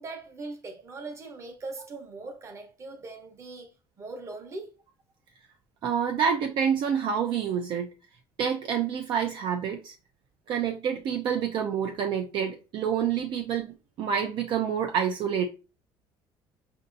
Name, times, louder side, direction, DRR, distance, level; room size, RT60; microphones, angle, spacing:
voice 1, 0.0-4.7, right 3 dB, 30° right, 0.9 m, -40 dB
voice 2, 5.8-7.9 8.4-9.9 10.5-15.4, right 7 dB, 55° right, 0.4 m, -28 dB
5.3 x 2.7 x 2.5 m
cardioid pair, 145°, 10 cm